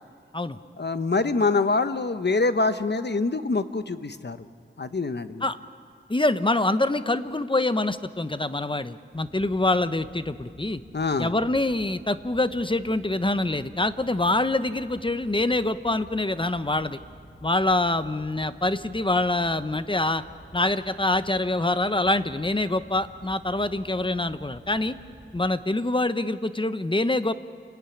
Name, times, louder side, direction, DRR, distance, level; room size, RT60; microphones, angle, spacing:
voice 1, 0.8-4.4 4.8-5.5 10.9-11.3, left 3 dB, 55° left, 11 dB, 1.0 m, -25 dB
voice 2, 6.1-10.8 11.2-17.0 17.4-20.2 20.5-24.9 25.3-27.3, left 2 dB, 25° left, 12 dB, 0.8 m, -25 dB
sound 1, 9.1-25.6, right 1 dB, 25° right, 2.9 m, -50 dB
28.5 x 16.0 x 10.0 m, 2.2 s
wide cardioid pair, 70°, 21 cm